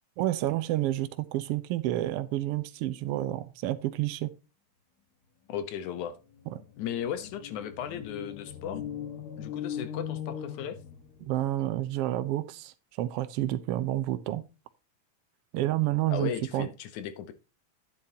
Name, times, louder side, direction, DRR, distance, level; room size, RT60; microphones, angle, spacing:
voice 1, 0.2-4.3 6.5-6.6 11.2-14.4 15.5-16.7, right 14 dB, 70° right, 1.5 m, -29 dB
voice 2, 5.5-6.2 6.8-8.8 9.4-10.8 16.1-17.3, left 9 dB, 85° left, 2.5 m, -36 dB
sound 1, 6.3-11.4, left 9 dB, 70° left, 0.9 m, -39 dB
9.6 x 9.0 x 2.8 m
omnidirectional pair, 3.3 m